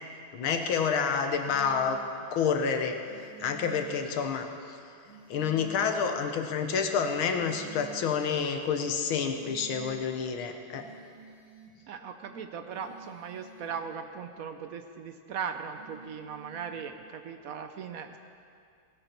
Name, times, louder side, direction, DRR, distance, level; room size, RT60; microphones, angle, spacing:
voice 1, 0.3-2.0 2.3-3.0 3.4-4.8 5.3-10.8, left 6 dB, 80° left, 6 dB, 1.8 m, -29 dB
sound 1, 1.4-2.0 3.0-4.0 5.0-6.0 7.0-8.0 9.0-10.0 10.7-11.7 12.7-13.7 15.7-16.8, right 7 dB, 15° left, 2.9 m, -50 dB
voice 2, 11.9-18.2, right 6 dB, 80° right, 7 dB, 0.7 m, -38 dB
18.5 x 12.0 x 4.5 m, 2.3 s
omnidirectional pair, 2.3 m